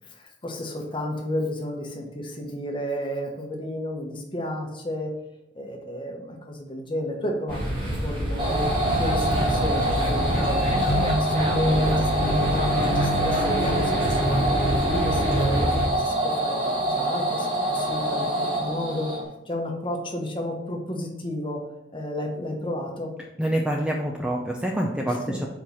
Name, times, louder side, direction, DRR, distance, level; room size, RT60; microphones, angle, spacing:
voice 1, 0.1-5.1 5.5-7.6 8.0-8.6 9.0-10.6 10.9-19.1 19.5-21.6 21.9-23.1 25.1-25.4, equal, 25° left, 1 dB, 1.0 m, -32 dB
sound 1, 7.5-15.9, equal, 45° right, 2.0 m, -25 dB
sound 2, 8.4-19.2, right 1 dB, 25° right, 1.1 m, -26 dB
voice 2, 23.4-25.5, right 1 dB, 5° right, 0 dB, 0.5 m, -26 dB
4.7 x 4.5 x 5.5 m, 0.84 s
head